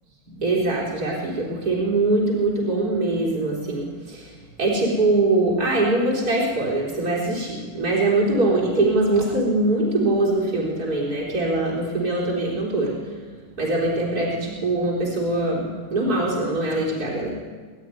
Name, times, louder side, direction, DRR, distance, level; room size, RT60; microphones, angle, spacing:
voice 1, 0.3-4.2 4.6-13.0 13.6-17.3, right 2 dB, 85° right, -5 dB, 4.6 m, -22 dB
21.0 x 13.0 x 9.7 m, 1.5 s
omnidirectional pair, 1.6 m